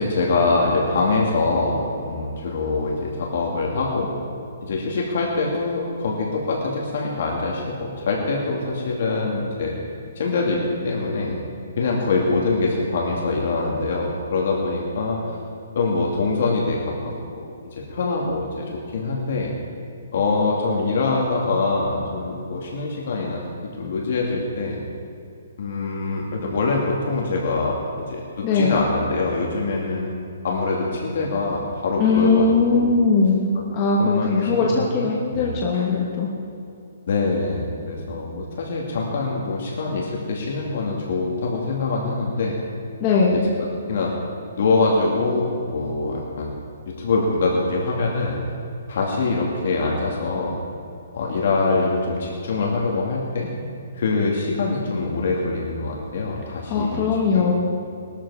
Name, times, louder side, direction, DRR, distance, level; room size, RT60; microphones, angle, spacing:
voice 1, 0.0-4.1 4.6-9.8 10.2-11.4 11.8-15.2 15.7-17.4 17.7-19.5 20.1-23.4 23.8-24.8 25.6-27.8 28.1-30.1 30.4-32.9 34.0-35.1 35.3-35.9 37.1-42.6 43.3-43.4 43.9-44.1 44.6-46.6 46.9-48.4 48.9-50.6 51.1-53.5 54.0-57.0 57.3-57.5, left 3 dB, 45° left, -2 dB, 2.3 m, -24 dB
voice 2, 28.4-28.9 32.0-36.3 43.0-43.5 56.7-57.5, left 4 dB, 20° left, -3 dB, 1.3 m, -20 dB
20.5 x 13.0 x 4.9 m, 2.6 s
hypercardioid pair, 180°, 0 cm